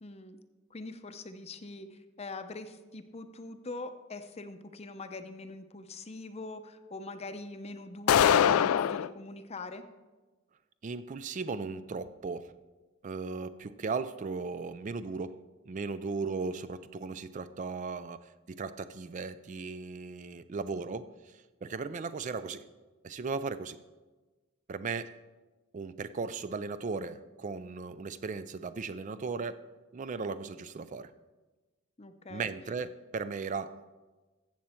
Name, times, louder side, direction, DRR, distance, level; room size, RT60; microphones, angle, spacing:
voice 1, 0.0-0.4 0.7-9.8 32.0-32.5, left 3 dB, 30° left, 9 dB, 0.6 m, -43 dB
sound 1, 8.1-9.1, left 9 dB, 85° left, 0.3 m, -22 dB
voice 2, 10.8-12.5 13.0-22.7 23.0-23.8 24.7-25.1 25.7-29.7 29.9-31.1 32.3-33.8, right 4 dB, 35° right, 13 dB, 0.3 m, -37 dB
14.5 x 7.5 x 4.4 m, 1.2 s
head